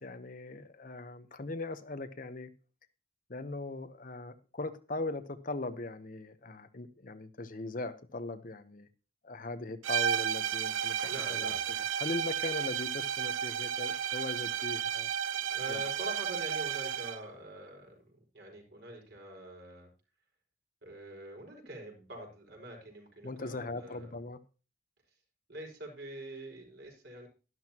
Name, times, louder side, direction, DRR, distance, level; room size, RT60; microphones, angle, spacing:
voice 1, 0.0-2.5 3.3-8.9 9.2-15.1 15.7-15.8 23.2-24.4, left 2 dB, 45° left, 10 dB, 0.9 m, -40 dB
sound 1, 9.8-17.3, right 9 dB, 90° right, 0.5 m, -33 dB
voice 2, 11.0-11.6 15.5-19.9 20.8-24.1 25.5-27.3, right 1 dB, 60° right, 1 dB, 5.4 m, -45 dB
12.5 x 12.0 x 2.9 m, 0.34 s
head